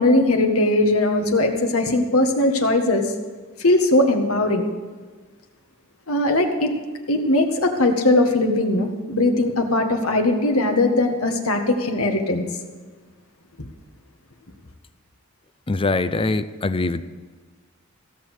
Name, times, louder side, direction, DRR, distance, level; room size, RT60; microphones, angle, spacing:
voice 1, 0.0-3.1 3.6-4.7 6.1-6.7 7.1-12.4 13.6-13.7, left 2 dB, 85° left, 4 dB, 1.7 m, -19 dB
voice 2, 15.7-17.0, left 3 dB, 25° left, 12 dB, 0.5 m, -23 dB
16.0 x 7.0 x 8.1 m, 1.4 s
head